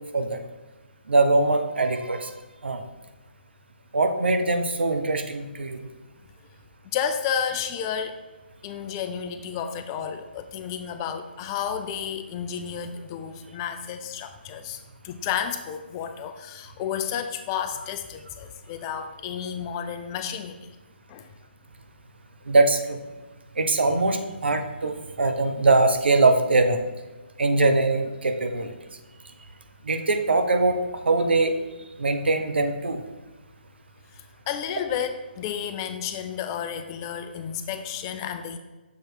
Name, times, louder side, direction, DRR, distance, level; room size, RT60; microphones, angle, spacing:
voice 1, 1.1-2.3 2.6-2.8 3.9-5.8 22.5-23.0 23.6-26.8 27.4-28.7 29.9-30.8 31.1-31.5 32.0-33.0, right 3 dB, 70° right, 7 dB, 0.7 m, -22 dB
voice 2, 6.9-8.2 8.6-14.8 15.0-20.7 21.1-21.3 34.2-38.6, left 8 dB, 20° left, 8 dB, 0.3 m, -31 dB
7.0 x 3.1 x 4.5 m, 1.2 s
figure-of-eight pair, 145°, 6 cm